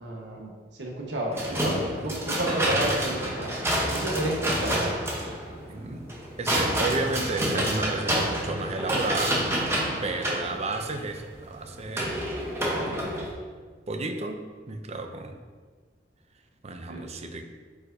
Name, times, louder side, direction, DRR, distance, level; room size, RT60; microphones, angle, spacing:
voice 1, 0.0-3.5 3.9-4.9 9.8-10.0 16.9-17.0, right 1 dB, 75° right, -1 dB, 1.3 m, -31 dB
sound 1, 1.4-13.3, right 1 dB, 15° right, 1.0 m, -28 dB
voice 2, 5.7-6.0 6.4-9.4 10.0-12.2 13.9-14.4 14.7-15.4 16.6-17.4, right 3 dB, 40° right, 6 dB, 0.6 m, -32 dB
8.2 x 4.8 x 2.7 m, 1.5 s
head